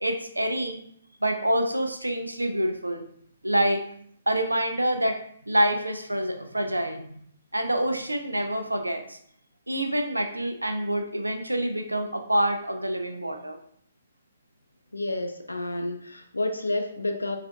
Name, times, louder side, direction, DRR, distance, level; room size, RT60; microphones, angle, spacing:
voice 1, 0.0-0.8 1.2-3.0 3.4-3.8 4.3-7.1 7.5-9.2 9.7-13.6, right 1 dB, 90° right, 6 dB, 0.4 m, -26 dB
voice 2, 14.9-17.4, left 2 dB, 85° left, 6 dB, 0.5 m, -30 dB
4.9 x 2.5 x 2.2 m, 0.65 s
figure-of-eight pair, 130°, 0 cm